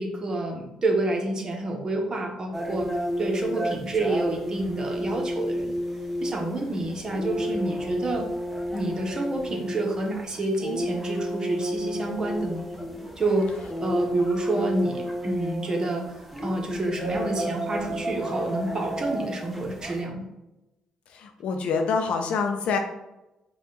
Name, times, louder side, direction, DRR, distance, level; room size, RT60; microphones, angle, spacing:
voice 1, 0.0-2.9 3.2-5.7 6.2-8.3 8.7-12.7 13.2-13.5 13.8-16.0 16.4-20.2, right 2 dB, 35° right, 1 dB, 1.1 m, -28 dB
sound 1, 2.5-20.0, equal, ahead, 0.9 m, -31 dB
voice 2, 21.1-22.8, left 5 dB, 75° left, 5 dB, 0.6 m, -26 dB
4.8 x 2.4 x 3.9 m, 0.97 s
cardioid pair, 75°, 2 cm